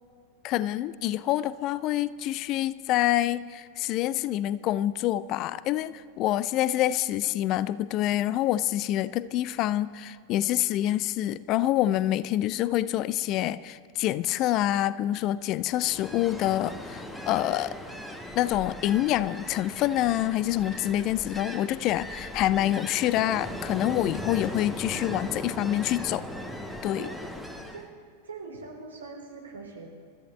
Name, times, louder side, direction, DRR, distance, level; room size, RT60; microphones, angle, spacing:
voice 1, 0.4-17.8 18.4-26.2 26.8-27.1, left 13 dB, 40° left, 18 dB, 0.4 m, -26 dB
Ocean, 15.7-27.9, left 1 dB, 5° left, 1.2 m, -38 dB
voice 2, 28.2-29.9, right 4 dB, 75° right, 0 dB, 3.4 m, -42 dB
26.0 x 13.5 x 3.2 m, 2.2 s
figure-of-eight pair, 90°, 0 cm